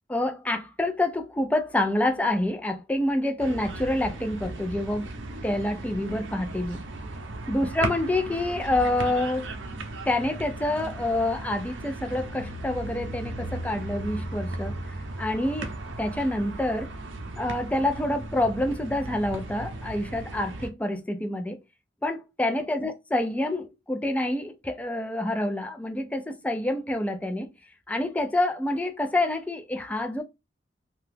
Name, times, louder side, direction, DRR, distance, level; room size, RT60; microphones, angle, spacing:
voice 1, 0.1-5.1 5.4-6.8 7.5-9.5 10.1-16.9 17.4-21.6 22.0-27.5 27.9-30.2, left 1 dB, 10° left, 0.4 m, -27 dB
sound 1, 3.4-20.7, right 2 dB, 80° right, 0.6 m, -36 dB
2.8 x 2.3 x 3.3 m
head